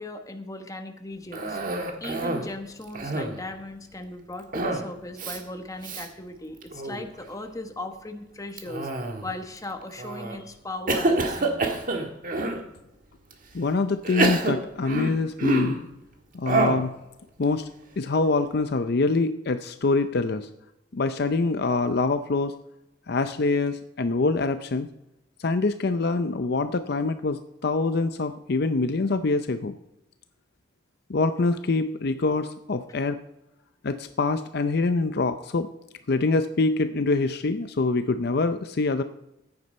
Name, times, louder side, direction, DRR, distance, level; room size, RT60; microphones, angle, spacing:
voice 1, 0.0-1.6 2.0-8.9 9.2-11.9, left 2 dB, 20° left, 6 dB, 1.3 m, -38 dB
Cough, 1.3-2.5 2.8-3.5 4.5-4.9 5.2-5.4 5.8-6.1 6.6-7.1 8.6-9.4 10.0-10.4 10.9-12.6 13.3-13.4 14.0-15.9 16.5-16.9, right 2 dB, 45° right, 1.6 m, -27 dB
voice 2, 13.5-15.8 16.3-16.9 17.4-17.7 18.0-20.5 20.9-22.5 23.1-24.9 25.4-29.7 31.1-33.2 33.8-35.7 36.1-39.0, left 3 dB, 60° left, 10 dB, 0.6 m, -25 dB
14.5 x 9.6 x 4.3 m, 0.88 s
head